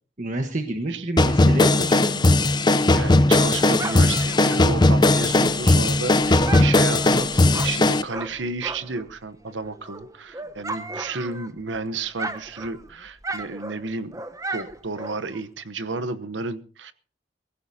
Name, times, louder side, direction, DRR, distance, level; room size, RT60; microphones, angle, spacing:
voice 1, 0.2-2.4, right 1 dB, 45° right, 5 dB, 1.3 m, -29 dB
sound 1, 1.2-8.0, left 2 dB, 25° left, 0.6 m, -18 dB
Dog, 2.8-9.1 9.5-11.8 12.0-15.5, right 2 dB, 20° right, 0.9 m, -36 dB
voice 2, 2.8-14.1 14.5-16.9, right 3 dB, 90° right, 12 dB, 0.9 m, -32 dB
22.0 x 15.5 x 2.8 m, 0.41 s
head